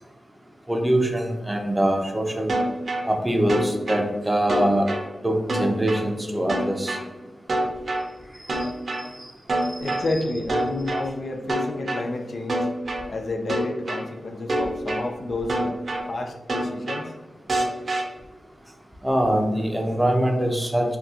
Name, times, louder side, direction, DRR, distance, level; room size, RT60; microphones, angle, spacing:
voice 1, 0.7-2.5 3.1-4.8 5.2-7.0 9.9-10.0 10.2-10.3 19.0-21.0, right 1 dB, 15° right, 3 dB, 0.5 m, -23 dB
sound 1, 2.5-3.0 3.5-4.0 4.5-5.0 5.5-6.0 6.5-7.0 7.5-8.0 8.5-9.0 9.5-10.0 10.5-11.0 11.5-12.0 12.5-13.0 13.5-14.0 14.5-15.0 15.5-16.0 16.5-17.0 17.5-18.0, right 1 dB, 55° right, 0.6 m, -25 dB
voice 2, 9.8-12.7 13.1-15.8 16.1-17.1, left 2 dB, 60° left, 4 dB, 0.4 m, -30 dB
3.5 x 2.3 x 2.7 m, 1.1 s
wide cardioid pair, 80°, 0 cm